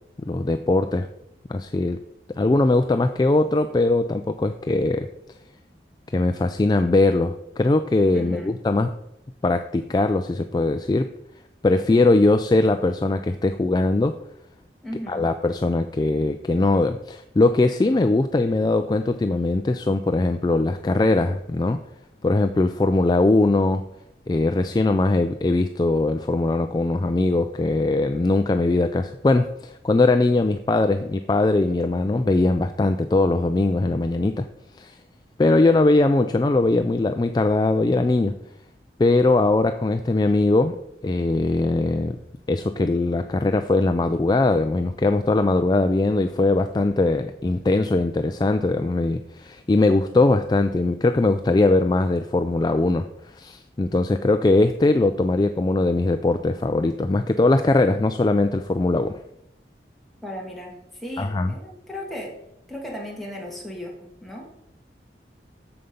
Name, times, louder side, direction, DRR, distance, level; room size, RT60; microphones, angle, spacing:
voice 1, 0.3-1.1 1.5-2.0 2.3-5.1 6.1-8.9 9.4-11.1 11.6-14.2 15.1-21.8 22.2-23.8 24.3-34.5 34.8-35.0 35.4-38.3 39.0-40.8 41.0-42.2 42.5-53.1 53.3-59.2 61.2-61.5, left 2 dB, 25° left, 8 dB, 0.3 m, -21 dB
voice 2, 8.1-8.6 14.8-15.3 60.2-62.4 62.7-64.6, equal, ahead, -3 dB, 1.7 m, -36 dB
7.6 x 7.0 x 5.2 m, 0.82 s
head